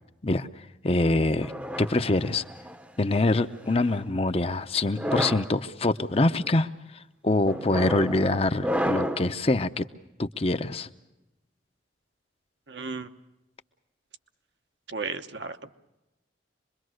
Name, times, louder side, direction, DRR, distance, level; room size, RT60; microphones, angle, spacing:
voice 1, 0.2-1.5 1.8-2.4 3.0-9.9 10.2-10.9, left 2 dB, 30° left, 10 dB, 0.7 m, -25 dB
sound 1, 1.4-2.8 3.6-4.0 4.8-5.5 6.2-6.5 7.5-9.3, equal, 5° right, 0.8 m, -31 dB
voice 2, 12.7-13.1 14.9-15.7, right 4 dB, 70° right, 7 dB, 1.1 m, -34 dB
25.5 x 22.0 x 6.4 m, 1.0 s
head